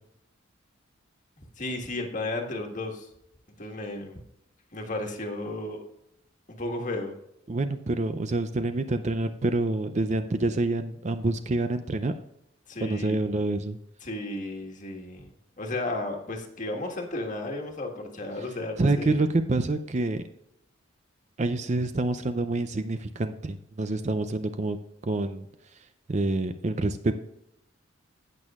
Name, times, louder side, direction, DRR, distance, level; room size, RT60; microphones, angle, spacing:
voice 1, 1.6-3.1 3.6-4.2 4.7-5.8 6.5-7.1 12.7-13.2 14.0-19.2, left 2 dB, 40° left, 2 dB, 1.5 m, -34 dB
voice 2, 7.5-12.1 12.8-13.8 18.8-20.2 21.4-24.8 25.0-25.4 26.1-27.1, right 2 dB, 35° right, 9 dB, 0.5 m, -27 dB
17.5 x 6.4 x 2.4 m, 0.81 s
head